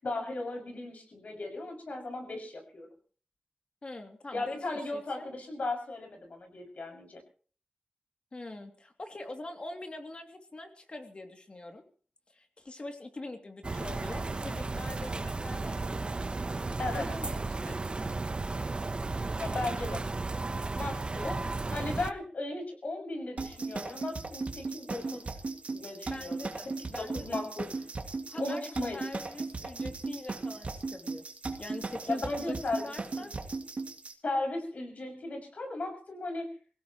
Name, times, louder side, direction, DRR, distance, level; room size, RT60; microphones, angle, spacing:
voice 1, 0.0-2.9 4.3-7.2 16.8-17.0 19.3-20.0 20.7-21.4 21.7-25.2 25.7-26.5 27.0-27.6 28.3-29.0 32.0-32.9 33.2-33.3 34.2-36.5, left 2 dB, 70° left, 2 dB, 6.6 m, -36 dB
voice 2, 3.8-4.6 4.9-5.3 8.3-11.8 12.3-16.0 16.8-17.9 26.1-27.4 28.3-28.6 28.9-31.2 31.6-33.3, left 2 dB, 45° left, 4 dB, 2.7 m, -43 dB
sound 1, 13.6-22.1, right 3 dB, 40° right, 0.9 m, -34 dB
sound 2, 23.4-34.1, right 3 dB, 60° right, 2.2 m, -37 dB
25.0 x 17.0 x 3.1 m, 0.42 s
wide cardioid pair, 95°, 3 cm